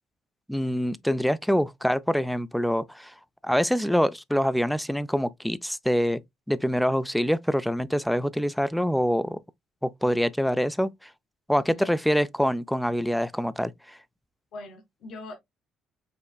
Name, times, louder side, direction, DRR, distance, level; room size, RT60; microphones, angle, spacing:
voice 1, 0.5-3.1 3.4-6.2 6.5-9.4 9.8-11.1 11.5-14.0, equal, ahead, 0.3 m, -25 dB
voice 2, 11.6-11.9 14.5-15.4, left 2 dB, 60° left, 1.8 m, -42 dB
5.4 x 3.5 x 2.2 m
cardioid pair, 120°, 0 cm